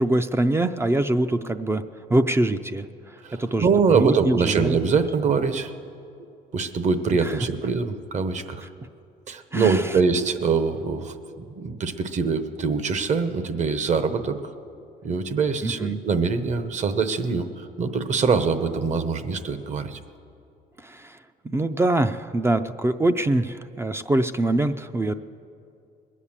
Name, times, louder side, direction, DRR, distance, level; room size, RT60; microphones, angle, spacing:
voice 1, 0.0-1.8 2.1-4.8 7.2-7.4 9.5-10.0 15.6-16.0 20.8-21.2 21.4-25.1, right 2 dB, 15° right, 9 dB, 0.4 m, -24 dB
voice 2, 3.6-5.7 6.5-8.7 9.3-14.4 15.0-20.0, right 5 dB, 45° right, 10 dB, 1.0 m, -24 dB
20.5 x 8.4 x 7.3 m, 2.5 s
cardioid pair, 110°, 17 cm